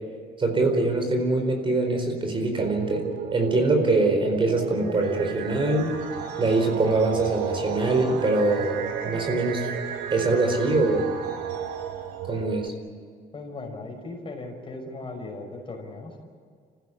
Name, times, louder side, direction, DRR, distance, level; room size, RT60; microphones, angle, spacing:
voice 1, 0.4-3.0 3.3-5.9 6.4-8.8 9.0-9.7 10.1-11.1 12.3-12.7, right 2 dB, 30° right, 4 dB, 4.5 m, -23 dB
sound 1, 2.6-12.7, right 9 dB, 50° right, 1.0 m, -34 dB
sound 2, 4.8-12.4, right 7 dB, 90° right, 2.9 m, -37 dB
voice 2, 13.3-16.2, left 2 dB, 30° left, 3 dB, 5.5 m, -37 dB
27.5 x 15.5 x 9.9 m, 2.1 s
cardioid pair, 110°, 17 cm